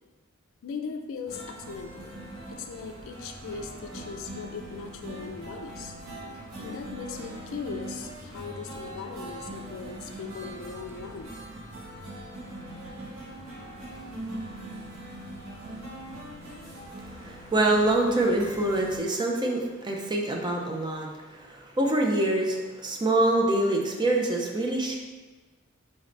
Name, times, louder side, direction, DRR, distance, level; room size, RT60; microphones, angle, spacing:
voice 1, 0.6-2.1 2.5-6.0 6.6-11.4, left 5 dB, 65° left, 5 dB, 0.4 m, -39 dB
sound 1, 1.3-19.0, right 1 dB, 85° right, 1.2 m, -41 dB
voice 2, 17.2-25.0, right 1 dB, 20° right, 0 dB, 0.4 m, -25 dB
4.0 x 3.2 x 2.5 m, 1.2 s
head